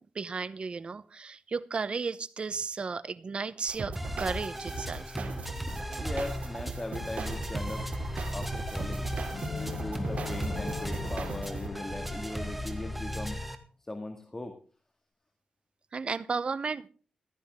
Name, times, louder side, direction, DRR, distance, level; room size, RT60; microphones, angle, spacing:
voice 1, 0.0-5.2 15.9-16.9, right 4 dB, 50° right, 0.8 m, -34 dB
sound 1, 3.7-11.7, right 3 dB, 65° right, 3.0 m, -38 dB
sound 2, 4.0-13.6, equal, 5° right, 2.1 m, -37 dB
voice 2, 6.0-7.9 8.3-9.1 9.5-13.5 13.8-14.6, left 2 dB, 20° left, 1.9 m, -39 dB
sound 3, 9.3-13.1, left 6 dB, 60° left, 0.7 m, -41 dB
16.0 x 13.5 x 3.7 m
wide cardioid pair, 95°, 2 cm